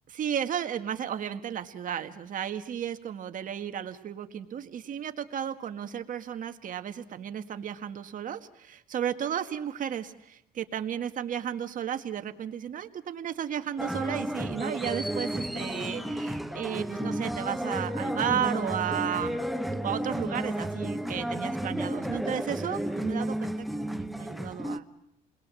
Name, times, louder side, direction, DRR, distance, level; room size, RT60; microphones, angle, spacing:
voice 1, 0.1-19.4 19.8-23.5 23.8-24.9, right 9 dB, 50° right, 7 dB, 1.7 m, -33 dB
sound 1, 13.8-24.8, right 1 dB, ahead, 1.0 m, -32 dB
29.5 x 21.5 x 7.7 m, 0.74 s
cardioid pair, 110°, 17 cm